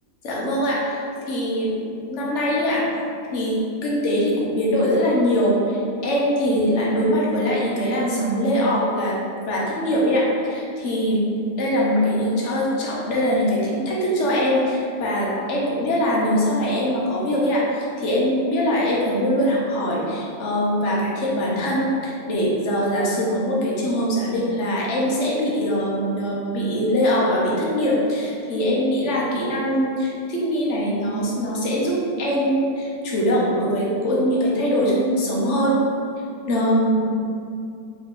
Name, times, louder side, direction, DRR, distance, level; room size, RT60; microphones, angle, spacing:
voice 1, 0.2-1.0 1.3-1.8 2.1-2.9 3.3-9.2 9.5-11.3 11.6-35.8 36.5-37.2, equal, 55° left, -5 dB, 1.0 m, -22 dB
3.7 x 3.1 x 3.7 m, 2.4 s
omnidirectional pair, 1.6 m